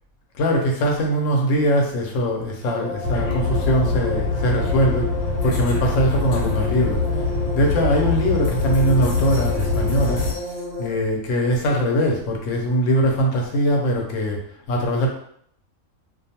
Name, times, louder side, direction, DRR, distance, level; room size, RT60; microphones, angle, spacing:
voice 1, 0.3-5.1 5.4-7.0 7.5-10.2 10.8-14.4 14.7-15.1, equal, 65° left, 1 dB, 0.9 m, -21 dB
sound 1, 2.6-10.9, left 2 dB, 10° left, 0.7 m, -32 dB
sound 2, 3.0-10.3, left 3 dB, 85° left, 1.1 m, -24 dB
2.5 x 2.2 x 2.8 m, 0.65 s
omnidirectional pair, 1.5 m